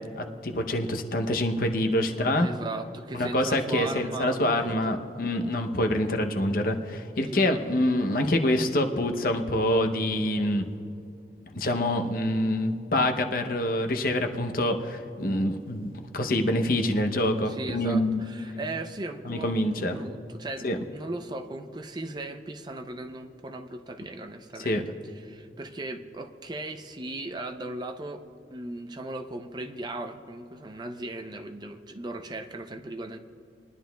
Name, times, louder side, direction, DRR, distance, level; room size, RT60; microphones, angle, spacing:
voice 1, 0.1-2.5 3.1-10.7 11.5-18.2 19.2-20.0 20.6-20.8 24.6-24.8, left 1 dB, 55° left, 5 dB, 0.7 m, -26 dB
voice 2, 2.4-4.6 4.8-5.0 7.3-7.5 17.5-25.0 25.2-28.2 28.5-33.2, right 2 dB, 25° right, 7 dB, 0.5 m, -37 dB
21.5 x 11.0 x 2.3 m, 2.5 s
head